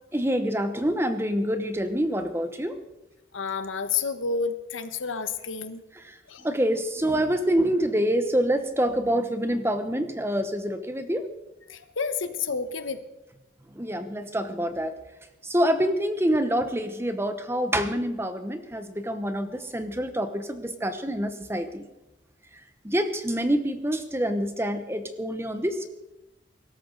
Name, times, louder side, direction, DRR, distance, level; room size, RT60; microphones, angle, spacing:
voice 1, 0.1-2.8 6.0-6.1 6.4-11.3 13.7-14.9 15.4-21.9 22.8-25.9, equal, 10° right, 9 dB, 1.0 m, -26 dB
voice 2, 3.3-5.8 6.3-6.5 11.7-13.0, left 5 dB, 85° left, 10 dB, 1.2 m, -30 dB
23.0 x 13.0 x 3.9 m, 0.96 s
head